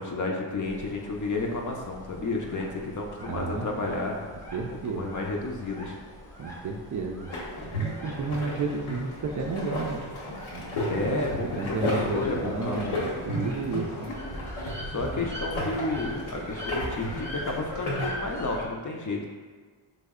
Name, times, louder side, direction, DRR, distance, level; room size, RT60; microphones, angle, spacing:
voice 1, 0.0-4.2 4.7-6.0 10.9-13.1 14.9-19.3, left 2 dB, 40° left, 0 dB, 0.5 m, -31 dB
sound 1, 0.6-18.7, equal, 5° left, 0.7 m, -42 dB
voice 2, 3.2-3.7 4.2-5.2 6.4-7.3 7.7-10.0 10.5-10.8 11.6-14.1, right 4 dB, 40° right, 1 dB, 0.4 m, -32 dB
sound 2, 7.3-18.1, left 1 dB, 90° left, 0.9 m, -33 dB
3.2 x 2.0 x 3.6 m, 1.5 s
cardioid pair, 60°, 49 cm